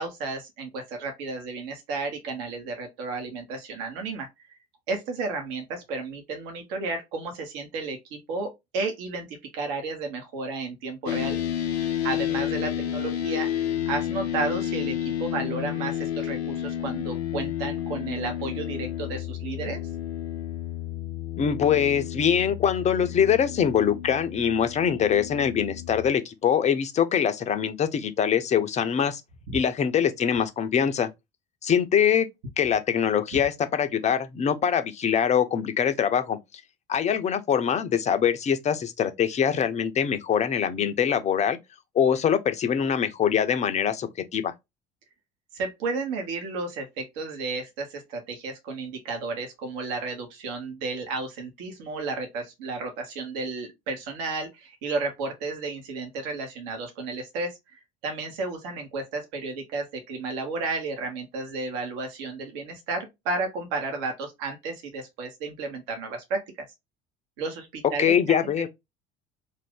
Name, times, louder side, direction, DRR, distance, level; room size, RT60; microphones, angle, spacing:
voice 1, 0.0-4.3 4.9-11.4 11.8-13.5 13.9-19.8 29.5-29.6 45.5-66.7 67.4-68.4, right 3 dB, 60° right, 1.0 m, -33 dB
sound 1, 11.1-26.1, left 11 dB, 80° left, 0.5 m, -31 dB
voice 2, 21.4-29.2 29.5-31.1 31.6-32.3 32.6-36.4 36.9-41.6 41.9-44.5 68.0-68.7, left 8 dB, 20° left, 0.5 m, -23 dB
2.6 x 2.5 x 3.5 m
figure-of-eight pair, 60°, 32 cm